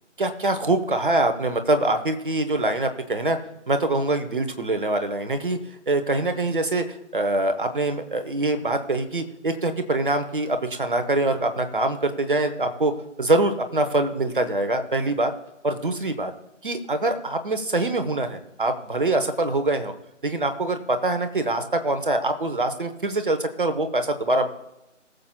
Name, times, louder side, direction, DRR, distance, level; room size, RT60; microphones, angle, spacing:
voice 1, 0.2-3.4 3.7-5.6 5.9-12.9 13.2-15.3 15.6-16.3 16.6-19.9 20.2-24.5, right 2 dB, 45° right, 8 dB, 0.9 m, -24 dB
20.5 x 7.4 x 2.3 m, 0.92 s
figure-of-eight pair, 160°, 38 cm